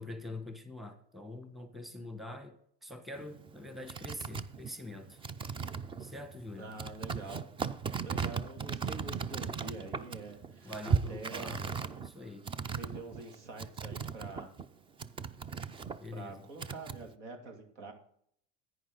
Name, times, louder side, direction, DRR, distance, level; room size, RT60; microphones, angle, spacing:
voice 1, 0.0-5.2 5.9-6.7 10.6-11.7 12.0-12.5 16.0-16.5, left 2 dB, ahead, 7 dB, 1.1 m, -44 dB
sound 1, 3.1-14.7 15.0-17.1, right 5 dB, 15° right, 0.3 m, -37 dB
voice 2, 6.6-7.4 8.0-11.5 12.7-14.5 16.1-17.9, right 3 dB, 85° right, 5 dB, 2.5 m, -46 dB
10.5 x 9.3 x 3.9 m, 0.65 s
supercardioid pair, 120°, 35 cm